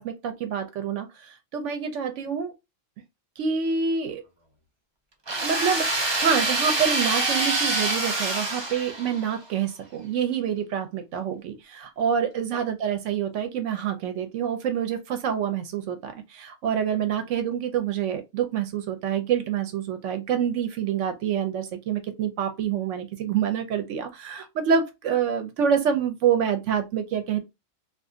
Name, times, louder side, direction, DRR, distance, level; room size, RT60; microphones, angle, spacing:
voice 1, 0.0-2.5 3.4-4.2 5.3-27.4, right 7 dB, 75° right, 0.9 m, -27 dB
sound 1, 5.3-9.4, right 2 dB, 30° right, 0.6 m, -26 dB
2.5 x 2.3 x 3.6 m
omnidirectional pair, 1.3 m